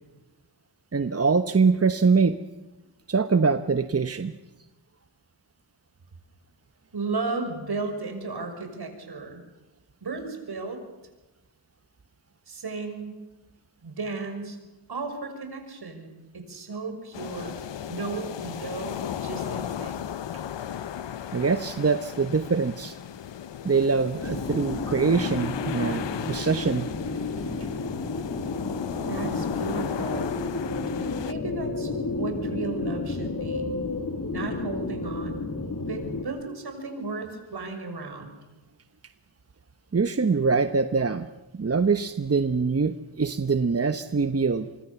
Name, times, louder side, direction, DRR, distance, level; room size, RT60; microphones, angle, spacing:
voice 1, 0.9-2.4 3.1-4.3 21.3-22.9 23.6-26.9 39.9-41.3 41.5-44.7, right 4 dB, 35° right, 10 dB, 1.2 m, -24 dB
voice 2, 6.9-9.4 10.0-10.8 12.5-13.2 13.8-14.6 14.9-17.6 17.9-20.0 28.9-30.3 31.0-33.7 34.3-35.4 35.9-38.3, right 3 dB, 60° right, 6 dB, 6.3 m, -34 dB
sound 1, 17.1-31.3, left 9 dB, 75° left, 1.0 m, -36 dB
sound 2, 24.2-36.2, left 3 dB, 45° left, 3.0 m, -31 dB
26.0 x 23.5 x 7.2 m, 1.1 s
cardioid pair, 55°, 43 cm